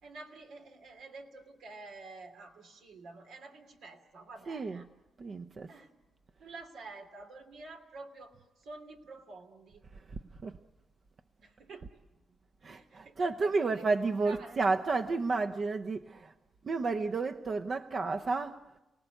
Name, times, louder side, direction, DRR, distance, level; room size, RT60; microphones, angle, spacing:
voice 1, 0.0-4.9 5.7-5.9 6.4-9.8 11.4-12.0 12.7-13.9 14.2-14.6, right 3 dB, 85° right, 2.8 m, -49 dB
voice 2, 4.5-4.9 5.2-5.7 9.9-10.6 12.6-16.3 16.6-18.6, right 3 dB, 50° right, 0.8 m, -32 dB
29.5 x 18.5 x 8.2 m
cardioid pair, 85°, 0 cm